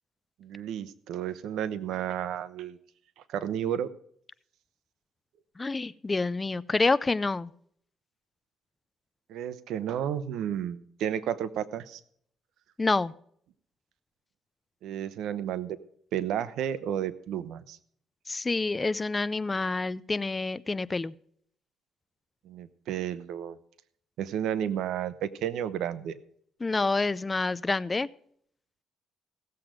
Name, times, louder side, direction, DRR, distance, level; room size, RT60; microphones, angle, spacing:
voice 1, 0.4-2.8 3.3-3.9 9.3-12.0 14.8-15.8 16.1-17.8 22.4-23.6 24.2-26.2, right 10 dB, 80° right, 15 dB, 0.9 m, -32 dB
voice 2, 5.6-7.5 12.8-13.1 18.3-21.1 26.6-28.1, left 3 dB, 20° left, 18 dB, 0.4 m, -28 dB
16.5 x 7.7 x 5.0 m, 0.64 s
cardioid pair, 110°, 0 cm